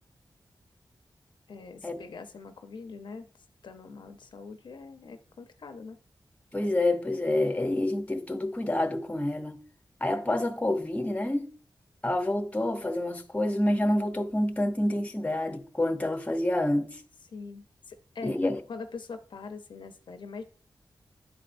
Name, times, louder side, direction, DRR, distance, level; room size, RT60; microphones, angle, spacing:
voice 1, 1.5-3.3 3.6-6.0 17.3-20.4, left 4 dB, 85° left, 0.7 m, -43 dB
voice 2, 6.5-9.6 10.0-11.5 12.0-17.0 18.2-18.6, left 1 dB, 20° left, 0.8 m, -28 dB
10.5 x 4.3 x 2.6 m
wide cardioid pair, 85°, 8 cm